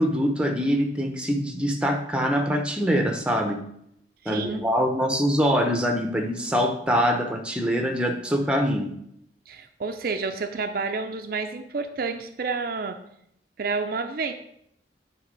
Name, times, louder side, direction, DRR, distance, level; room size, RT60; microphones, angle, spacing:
voice 1, 0.0-3.6 4.3-8.9, equal, 5° right, 4 dB, 0.7 m, -24 dB
voice 2, 4.2-4.6 9.5-13.0 13.6-14.3, right 4 dB, 55° right, 7 dB, 0.5 m, -29 dB
9.5 x 3.5 x 5.2 m, 0.73 s
head